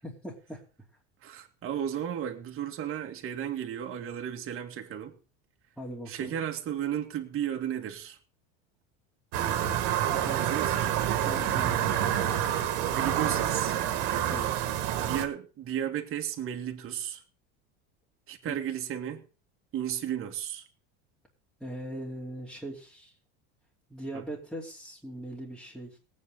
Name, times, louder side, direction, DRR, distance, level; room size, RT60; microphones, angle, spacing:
voice 1, 0.0-0.6 5.8-6.3 10.1-10.5 11.2-11.8 14.3-14.5 18.5-18.6 21.6-23.1 23.9-26.0, right 1 dB, ahead, 2.9 m, -40 dB
voice 2, 1.2-5.2 6.1-8.2 10.4-11.3 12.8-13.8 15.0-17.2 18.3-19.2 19.7-20.6 24.1-24.2, right 10 dB, 40° right, 2.3 m, -34 dB
sound 1, 9.3-15.3, right 11 dB, 70° right, 2.3 m, -28 dB
20.0 x 8.7 x 3.8 m
supercardioid pair, 125°, 33 cm